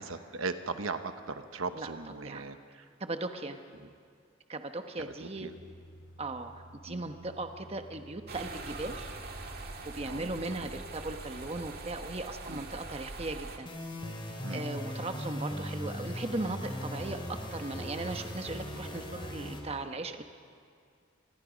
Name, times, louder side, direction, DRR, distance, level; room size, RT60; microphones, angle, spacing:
voice 1, 0.0-2.9 3.7-3.9 5.0-5.5 6.9-7.0 10.0-10.6 12.5-12.6 14.4-14.6, right 4 dB, 85° right, 9 dB, 1.1 m, -39 dB
voice 2, 3.0-3.6 4.5-5.5 6.2-9.1 9.8-13.7 14.5-20.2, right 2 dB, 30° right, 6 dB, 1.1 m, -38 dB
sound 1, 5.3-11.7, equal, 90° left, 4.0 m, -53 dB
sound 2, 8.3-13.6, right 3 dB, 50° right, 2.1 m, -43 dB
sound 3, 13.7-19.6, equal, 25° left, 3.2 m, -38 dB
28.0 x 20.5 x 5.2 m, 2.2 s
head